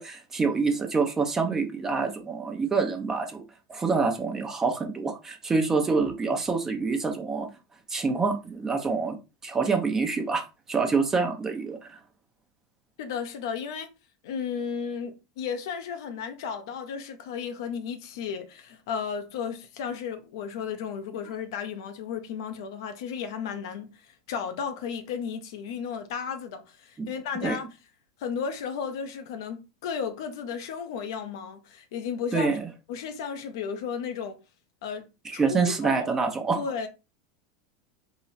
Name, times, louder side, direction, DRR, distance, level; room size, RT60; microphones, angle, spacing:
voice 1, 0.0-3.4 3.7-7.5 7.9-9.2 9.4-10.4 10.7-12.0 27.0-27.1 27.4-27.6 32.3-32.7 35.2-36.6, right 4 dB, 20° right, 0.8 m, -26 dB
voice 2, 13.0-13.9 14.2-27.7 28.2-32.6 32.9-34.4 34.8-35.0 35.3-36.1 36.6-36.9, left 6 dB, 70° left, 0.6 m, -34 dB
3.9 x 2.0 x 4.1 m
hypercardioid pair, 105°, 2 cm